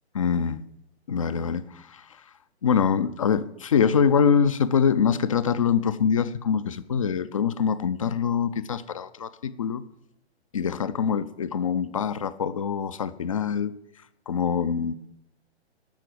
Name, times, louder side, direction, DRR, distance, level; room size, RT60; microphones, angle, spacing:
voice 1, 0.1-0.6 1.1-2.2 2.6-9.8 10.5-13.7 14.3-14.9, left 7 dB, 30° left, 0.4 m, -24 dB
12.0 x 6.0 x 7.7 m
figure-of-eight pair, 125°, 33 cm